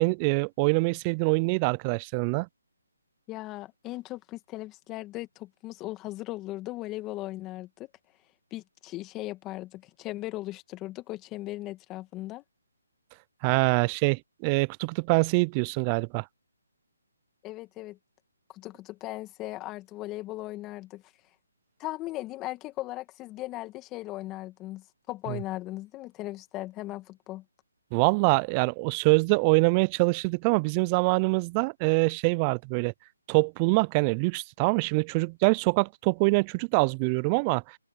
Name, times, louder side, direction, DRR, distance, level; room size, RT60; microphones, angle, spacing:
voice 1, 0.0-2.5 13.4-16.2 25.3-25.4 27.9-32.9 33.3-37.8, right 31 dB, 25° right, 0.4 m, -24 dB
voice 2, 3.3-7.9 8.5-12.4 17.4-18.0 18.5-21.0 21.8-27.4, left 17 dB, 20° left, 2.2 m, -38 dB
open air
figure-of-eight pair, 150°, 0 cm